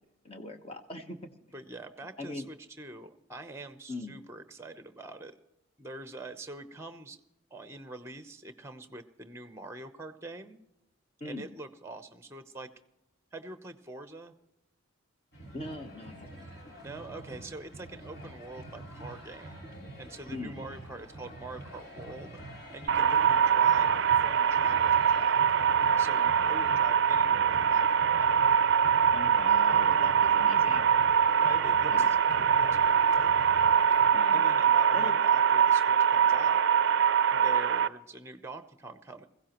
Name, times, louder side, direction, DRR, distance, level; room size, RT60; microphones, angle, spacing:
voice 1, 0.2-1.3 2.2-2.5 3.9-4.2 11.2-11.5 15.5-16.4 20.3-20.6 29.1-30.9 31.9-32.1 32.3-32.5 34.1-34.4 34.9-35.2, left 2 dB, 30° left, 5 dB, 1.1 m, -40 dB
voice 2, 1.5-5.4 5.8-7.2 7.5-10.6 11.2-12.7 13.3-14.3 16.8-19.6 20.0-22.4 22.7-25.4 26.0-28.3 31.4-32.2 32.5-33.4 34.3-36.6 37.3-39.3, right 2 dB, 15° right, 9 dB, 0.8 m, -44 dB
sound 1, 15.3-34.1, right 1 dB, 55° left, 3.5 m, -46 dB
sound 2, 22.9-37.9, right 7 dB, 55° right, 0.4 m, -23 dB
21.0 x 16.0 x 3.0 m, 0.90 s
head